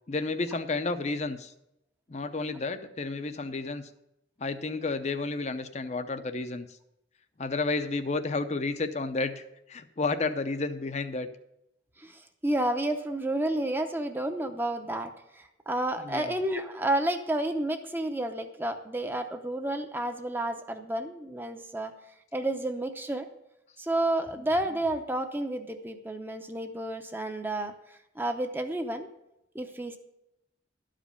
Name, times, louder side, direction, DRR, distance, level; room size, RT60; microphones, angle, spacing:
voice 1, 0.1-1.5 2.1-3.9 4.4-6.8 7.4-11.3 16.0-16.4, left 3 dB, 40° left, 10 dB, 0.6 m, -31 dB
voice 2, 12.0-21.9 22.3-23.3 23.8-27.7 28.2-29.1 29.5-30.0, right 1 dB, 10° right, 6 dB, 0.7 m, -31 dB
12.5 x 5.1 x 6.8 m, 0.84 s
head